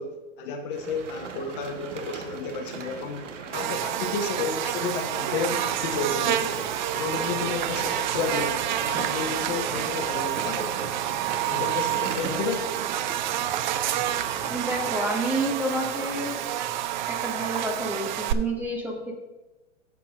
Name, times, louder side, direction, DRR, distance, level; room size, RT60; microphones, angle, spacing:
voice 1, 0.0-10.7 11.4-12.8, left 4 dB, 45° left, 5 dB, 1.1 m, -32 dB
sound 1, 0.7-14.9, right 5 dB, 70° right, 1.3 m, -38 dB
Buzz, 3.5-18.3, right 12 dB, 40° right, 0.4 m, -29 dB
voice 2, 14.5-16.4 17.1-19.1, right 1 dB, 5° right, -1 dB, 1.2 m, -29 dB
13.0 x 7.2 x 2.5 m, 1.1 s
hypercardioid pair, 125°, 38 cm